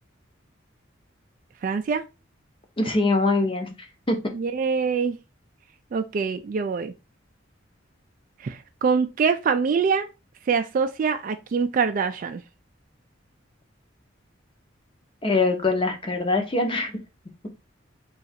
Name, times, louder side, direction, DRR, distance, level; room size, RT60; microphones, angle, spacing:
voice 1, 1.6-2.0 4.3-5.2 5.9-6.9 8.4-10.1 10.5-12.4, right 5 dB, 45° right, 0.3 m, -24 dB
voice 2, 2.8-3.7 4.1-4.2 15.2-17.0, left 3 dB, 25° left, 0.7 m, -23 dB
3.8 x 2.4 x 4.0 m
head